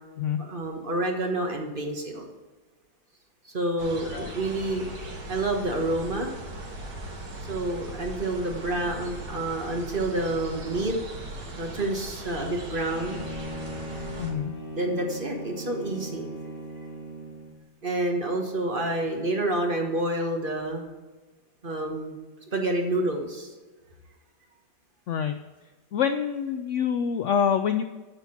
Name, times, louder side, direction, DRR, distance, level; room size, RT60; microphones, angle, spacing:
voice 1, 0.4-2.2 3.5-4.9 5.3-6.3 7.5-10.9 11.6-13.2 14.8-16.3 17.8-20.8 21.6-22.2 22.5-23.5, right 1 dB, 35° right, 2 dB, 1.3 m, -28 dB
sound 1, 3.8-14.3, right 2 dB, 85° right, 2.3 m, -39 dB
Bowed string instrument, 12.8-17.6, right 1 dB, 35° left, 1.5 m, -38 dB
voice 2, 14.2-14.5 25.1-25.4 25.9-27.8, left 7 dB, 85° left, 9 dB, 0.6 m, -26 dB
9.0 x 5.8 x 5.8 m, 1.3 s
omnidirectional pair, 1.8 m